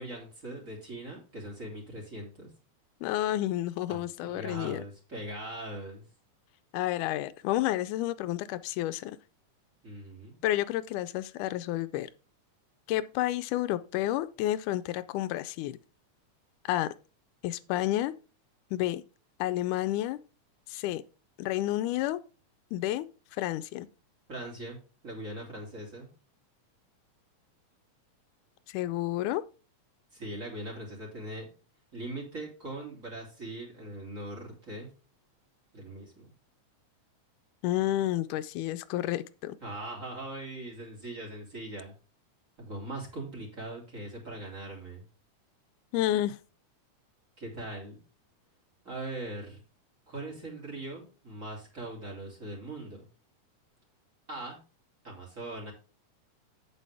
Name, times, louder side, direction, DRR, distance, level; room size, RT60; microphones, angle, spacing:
voice 1, 0.0-2.5 3.9-6.0 9.8-10.4 24.3-24.8 25.0-26.1 30.1-31.5 31.9-34.9 35.7-36.3 39.6-41.9 42.6-45.0 47.4-48.0 48.8-49.6 50.1-53.0 54.3-54.6 55.0-55.7, right 1 dB, 25° right, 2.7 m, -40 dB
voice 2, 3.0-4.8 6.7-9.2 10.4-12.1 12.9-15.8 16.7-16.9 17.4-18.1 18.7-19.0 19.4-20.2 20.7-21.0 21.4-22.2 22.7-23.1 23.4-23.9 28.7-29.4 37.6-39.6 45.9-46.4, left 14 dB, 85° left, 2.0 m, -30 dB
8.3 x 7.9 x 3.4 m
omnidirectional pair, 3.5 m